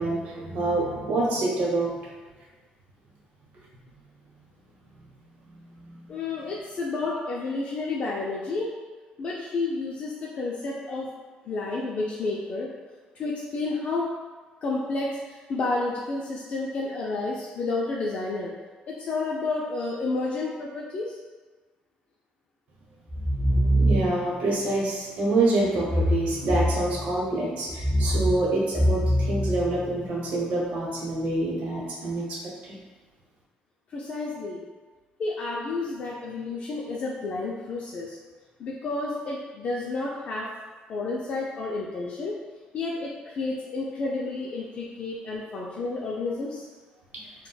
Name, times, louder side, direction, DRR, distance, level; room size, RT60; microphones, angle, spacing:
voice 1, 0.0-1.9 5.5-6.0 23.8-32.4, right 2 dB, 60° right, -4 dB, 0.8 m, -26 dB
voice 2, 6.1-8.7 9.2-11.1 11.5-12.7 13.2-14.1 14.6-15.1 15.5-18.5 18.9-21.1 33.9-34.6 35.2-38.2 38.6-40.5 40.9-42.3 42.7-46.7, left 3 dB, 45° left, -4 dB, 0.4 m, -30 dB
sound 1, 23.1-24.4 25.7-27.2 27.7-30.2, equal, ahead, 1.2 m, -25 dB
3.9 x 2.1 x 2.2 m, 1.3 s
cardioid pair, 135°, 3 cm